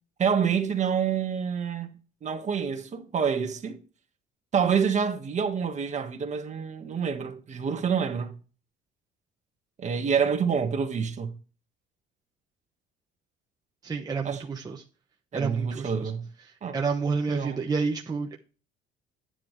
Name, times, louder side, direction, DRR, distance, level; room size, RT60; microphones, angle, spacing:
voice 1, 0.2-1.9 2.2-3.8 4.5-8.4 9.8-11.3 14.2-14.4 15.3-16.3 16.6-16.8 17.3-17.6, right 6 dB, 35° right, 1.6 m, -27 dB
voice 2, 13.8-14.8 15.3-16.1 16.7-18.4, right 5 dB, 20° right, 1.1 m, -29 dB
10.5 x 9.1 x 3.3 m
cardioid pair, 130°, 20 cm